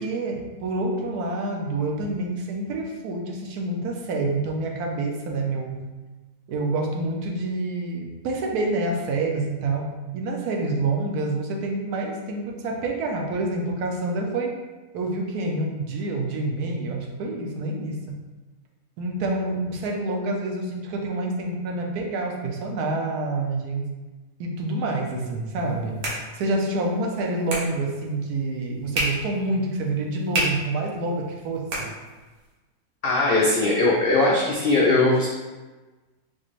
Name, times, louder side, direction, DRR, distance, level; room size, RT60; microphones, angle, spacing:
voice 1, 0.0-5.8 6.5-14.5 14.9-18.2 19.0-23.9 24.4-26.0 26.3-31.9, right 2 dB, 90° right, 1 dB, 1.2 m, -27 dB
sound 1, 25.5-32.5, right 1 dB, 65° right, 1.3 m, -33 dB
voice 2, 33.0-35.3, left 2 dB, 85° left, -4 dB, 0.5 m, -20 dB
4.2 x 3.0 x 2.5 m, 1.2 s
omnidirectional pair, 1.6 m